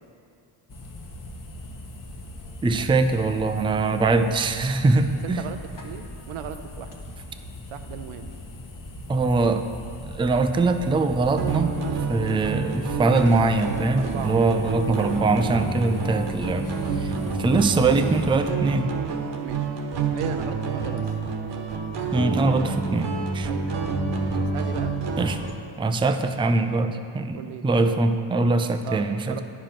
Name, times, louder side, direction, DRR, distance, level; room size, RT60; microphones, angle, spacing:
sound 1, 0.7-18.4, left 2 dB, 40° left, 1.1 m, -40 dB
voice 1, 2.6-5.4 9.1-9.7 10.0-11.8 12.1-17.1 17.4-18.9 22.1-23.5 25.2-25.4 25.8-27.4 27.6-29.4, right 3 dB, 10° right, 8 dB, 0.4 m, -22 dB
voice 2, 5.2-5.6 5.8-7.0 7.7-8.3 12.2-12.4 13.3-13.6 13.9-14.4 16.5-16.7 17.2-17.4 19.4-19.7 20.2-21.1 23.4-23.8 24.3-24.9 27.3-27.6 28.8-29.4, right 10 dB, 90° right, 8 dB, 0.7 m, -37 dB
sound 2, 11.4-25.5, right 4 dB, 55° right, 1.2 m, -28 dB
10.0 x 5.1 x 5.9 m, 2.5 s
cardioid pair, 80°, 50 cm